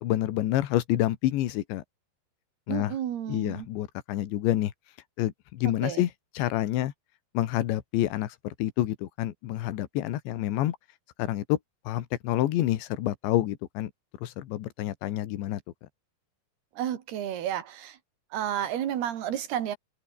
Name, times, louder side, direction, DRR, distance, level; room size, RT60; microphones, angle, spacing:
voice 1, 0.0-1.8 2.7-3.0 3.3-4.7 5.2-6.9 7.4-10.8 11.2-11.6 11.9-13.9 14.2-15.6, left 14 dB, 75° left, 3.8 m, -28 dB
voice 2, 2.7-3.7 5.8-6.0 16.8-18.0 18.3-19.8, right 10 dB, 65° right, 3.9 m, -31 dB
omnidirectional pair, 5.2 m